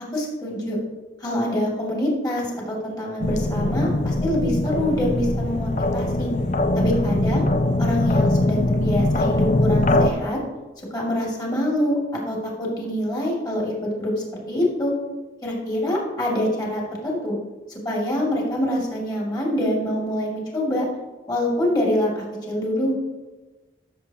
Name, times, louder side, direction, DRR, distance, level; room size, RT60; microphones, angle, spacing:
voice 1, 0.1-0.8 1.2-6.3 6.7-7.5 7.8-10.4 10.9-12.0 12.3-14.9 15.4-17.4 17.8-20.8 21.3-22.9, left 1 dB, 20° left, -3 dB, 2.5 m, -25 dB
sound 1, 3.2-10.1, left 1 dB, 40° left, 0.5 m, -21 dB
14.0 x 7.0 x 2.9 m, 1.2 s
head